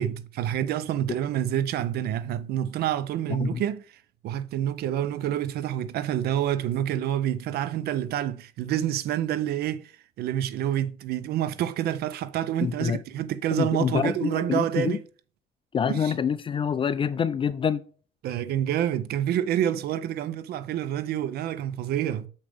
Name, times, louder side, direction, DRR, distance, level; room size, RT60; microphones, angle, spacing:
voice 1, 0.0-15.0 15.9-16.1 18.2-22.3, right 11 dB, 70° right, 0.5 m, -28 dB
voice 2, 12.6-13.0 13.6-15.0 15.7-17.8, left 7 dB, 30° left, 0.4 m, -26 dB
6.5 x 5.1 x 3.5 m
cardioid pair, 110°, 17 cm